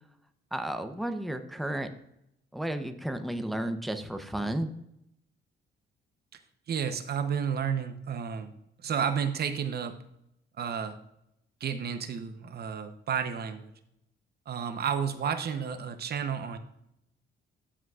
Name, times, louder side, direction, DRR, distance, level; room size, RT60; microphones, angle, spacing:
voice 1, 0.5-1.9 2.5-4.7, right 1 dB, ahead, 7 dB, 0.7 m, -33 dB
voice 2, 6.7-8.5 8.8-10.0 10.6-11.0 11.6-13.7 14.5-16.6, right 7 dB, 55° right, 9 dB, 0.8 m, -31 dB
12.5 x 5.8 x 2.4 m, 0.80 s
cardioid pair, 90°, 20 cm